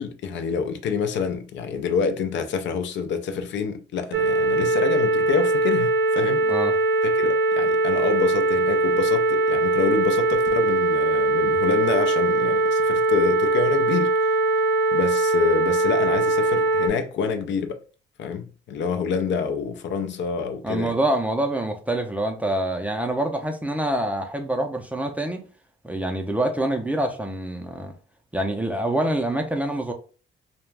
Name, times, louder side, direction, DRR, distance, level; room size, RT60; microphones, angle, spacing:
voice 1, 0.0-6.4 7.0-14.1 14.9-17.8 18.2-20.9, left 6 dB, 65° left, 0.4 m, -27 dB
sound 1, 4.1-16.9, right 2 dB, 65° right, 0.6 m, -21 dB
voice 2, 20.6-25.4 25.8-27.9 28.3-29.9, right 1 dB, 5° right, 0.4 m, -26 dB
2.3 x 2.1 x 3.2 m
cardioid pair, 90°, 20 cm